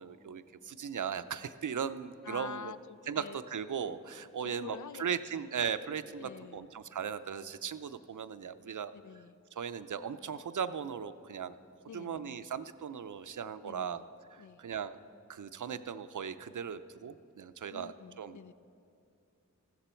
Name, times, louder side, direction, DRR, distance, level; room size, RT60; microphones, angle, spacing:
voice 1, 0.0-2.7 3.1-8.9 9.6-11.6 11.9-14.0 14.3-15.0 15.3-18.4, right 7 dB, 70° right, 12 dB, 0.6 m, -38 dB
voice 2, 2.2-3.4 4.4-5.4 6.2-6.7 8.9-9.4 11.9-12.5 13.6-14.1 14.4-14.6 17.7-18.5, left 7 dB, 65° left, 14 dB, 0.5 m, -47 dB
14.5 x 13.0 x 4.4 m, 2.6 s
cardioid pair, 45°, 31 cm